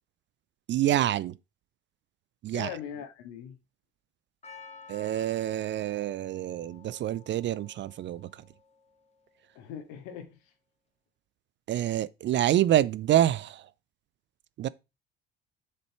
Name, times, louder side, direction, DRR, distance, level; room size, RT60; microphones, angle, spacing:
voice 1, 0.7-1.3 2.4-2.7 4.9-8.3 11.7-13.7 14.6-14.7, right 12 dB, 35° right, 0.5 m, -27 dB
voice 2, 2.5-3.6 9.5-10.5, left 8 dB, 65° left, 2.2 m, -40 dB
Percussion, 4.4-9.4, left 5 dB, 20° left, 1.9 m, -52 dB
7.7 x 6.7 x 4.5 m
figure-of-eight pair, 60°, 31 cm